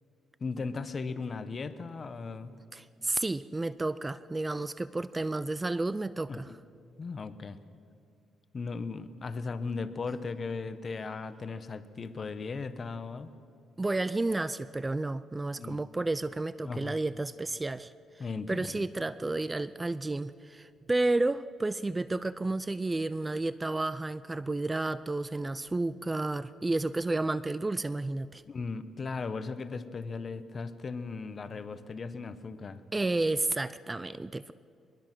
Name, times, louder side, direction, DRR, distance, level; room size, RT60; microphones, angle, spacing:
voice 1, 0.4-2.5 6.3-6.6 7.0-7.6 8.5-13.3 15.6-15.8 16.6-16.9 18.2-18.8 28.5-32.8, left 4 dB, 40° left, 12 dB, 1.1 m, -37 dB
voice 2, 2.7-6.5 13.8-17.9 18.5-28.4 32.9-34.5, right 2 dB, 20° right, 16 dB, 0.5 m, -31 dB
23.0 x 21.5 x 6.1 m, 2.4 s
cardioid pair, 90°, 0 cm